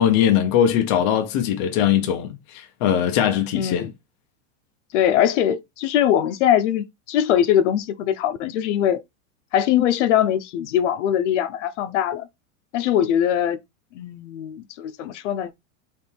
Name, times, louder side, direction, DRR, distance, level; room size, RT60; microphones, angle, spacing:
voice 1, 0.0-3.9, left 9 dB, 25° left, 0.3 m, -20 dB
voice 2, 3.5-3.9 4.9-9.0 9.5-12.3 12.7-13.6 13.9-15.5, left 10 dB, 60° left, 0.6 m, -21 dB
3.4 x 3.2 x 4.3 m
supercardioid pair, 165°, 40 cm